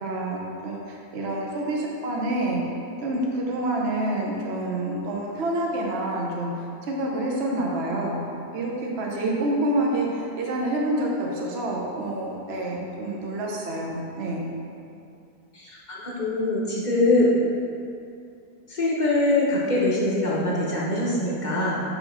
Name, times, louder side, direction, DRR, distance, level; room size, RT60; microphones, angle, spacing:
voice 1, 0.0-2.6 3.0-8.2 8.5-14.4, right 1 dB, 50° right, -2 dB, 0.9 m, -27 dB
voice 2, 15.5-17.4 18.7-21.7, left 2 dB, 35° left, -6 dB, 0.8 m, -23 dB
4.7 x 3.9 x 5.5 m, 2.5 s
omnidirectional pair, 1.7 m